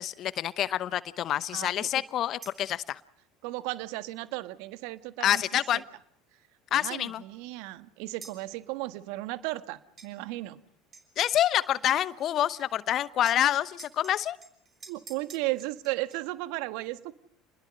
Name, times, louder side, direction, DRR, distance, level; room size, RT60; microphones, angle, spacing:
voice 1, 0.0-3.0 5.2-5.8 6.7-7.2 11.2-14.4, left 11 dB, 50° left, 17 dB, 0.9 m, -27 dB
voice 2, 1.5-1.9 3.4-5.4 5.7-5.8 6.7-10.6 14.9-17.1, right 19 dB, 65° right, 12 dB, 1.5 m, -35 dB
sound 1, 2.4-2.7 5.3-5.7 8.2-8.5 10.0-10.1 10.9-13.0 13.3-16.2, right 5 dB, 35° right, 6.1 m, -50 dB
29.5 x 21.0 x 6.5 m, 0.67 s
hypercardioid pair, 70°, 0 cm